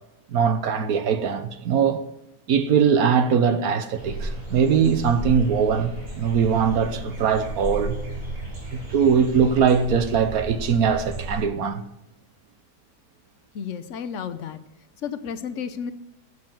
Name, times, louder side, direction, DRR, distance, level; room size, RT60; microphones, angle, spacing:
voice 1, 0.3-2.0 2.5-8.0 8.7-11.8, right 6 dB, 65° right, 1.2 m, -21 dB
sound 1, 4.0-11.4, right 2 dB, 85° right, 4.3 m, -34 dB
voice 2, 13.5-14.6 15.0-15.9, left 7 dB, 60° left, 0.9 m, -32 dB
8.0 x 7.5 x 7.3 m
omnidirectional pair, 1.8 m